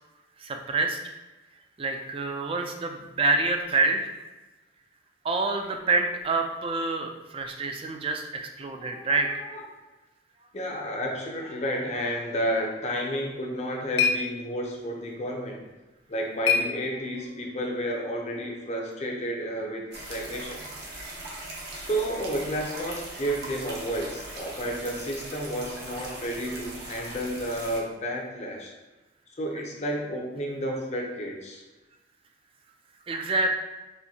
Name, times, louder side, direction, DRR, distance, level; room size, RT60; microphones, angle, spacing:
voice 1, 0.4-1.0 1.8-4.1 5.2-9.4 33.1-33.5, right 3 dB, 30° right, 4 dB, 0.4 m, -27 dB
voice 2, 8.7-9.6 10.5-15.6 16.1-20.7 21.7-28.7 29.4-31.6, equal, 40° left, 0 dB, 0.6 m, -31 dB
sound 1, 13.2-17.4, left 6 dB, 80° left, 0.4 m, -31 dB
sound 2, 19.9-27.8, right 2 dB, 65° right, 0.8 m, -40 dB
4.3 x 2.7 x 2.7 m, 1.1 s
head